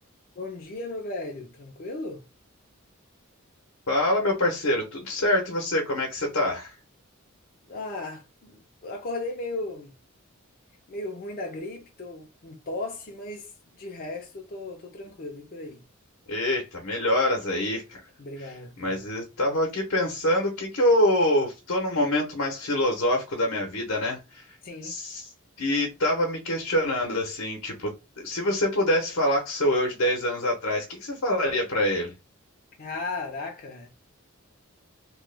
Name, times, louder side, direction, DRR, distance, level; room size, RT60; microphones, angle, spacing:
voice 1, 0.4-2.2 7.7-9.9 10.9-13.5 13.8-15.8 18.2-19.0 24.6-24.9 32.8-33.9, left 2 dB, 45° left, 0.6 m, -36 dB
voice 2, 3.9-6.7 16.3-18.0 18.8-24.4 24.8-25.3 25.6-32.1, left 1 dB, 70° left, 0.9 m, -25 dB
3.0 x 2.3 x 3.2 m
head